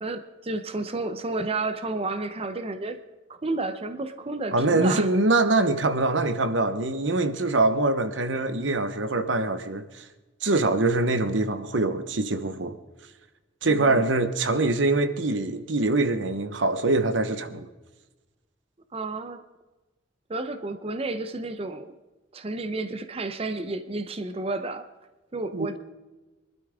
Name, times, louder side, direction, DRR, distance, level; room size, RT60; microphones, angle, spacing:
voice 1, 0.0-3.0 3.3-5.1 13.6-14.0 18.9-19.4 20.3-21.9 22.3-24.9 25.3-25.8, right 2 dB, 30° right, 0.8 m, -31 dB
voice 2, 4.5-10.0 10.4-12.8 13.6-17.7 25.5-25.8, right 2 dB, 75° right, 1.1 m, -24 dB
23.5 x 12.5 x 3.7 m
head